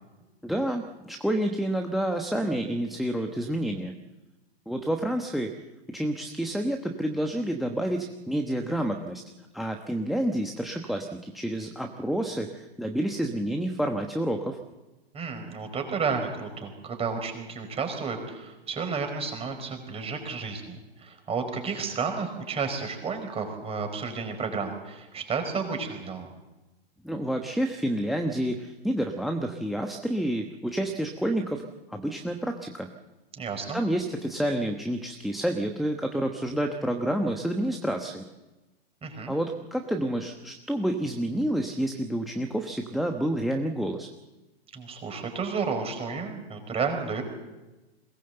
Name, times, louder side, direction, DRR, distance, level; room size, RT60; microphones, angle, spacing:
voice 1, 0.4-4.0 4.7-5.5 5.9-9.2 9.5-14.6 27.0-31.6 31.9-32.9 33.7-38.2 39.3-44.1, right 1 dB, ahead, 5 dB, 1.1 m, -29 dB
voice 2, 15.1-26.3 33.4-33.8 39.0-39.3 44.7-47.2, right 5 dB, 20° right, 5 dB, 4.7 m, -32 dB
21.5 x 18.5 x 7.9 m, 1.1 s
hypercardioid pair, 125°, 32 cm